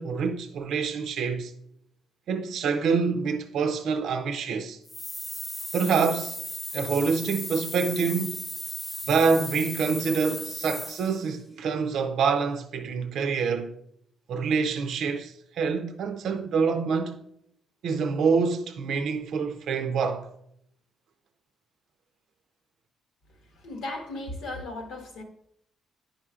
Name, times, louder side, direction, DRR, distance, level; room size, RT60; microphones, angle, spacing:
voice 1, 0.0-1.5 2.3-4.8 5.7-6.4 6.7-8.4 9.1-13.8 14.3-17.2 17.8-20.3, right 5 dB, 75° right, 0.5 m, -26 dB
sound 1, 4.9-11.3, left 1 dB, 10° left, 0.5 m, -36 dB
voice 2, 23.4-25.2, left 2 dB, 85° left, 1.4 m, -36 dB
9.8 x 5.1 x 2.4 m
cardioid pair, 90°, 0 cm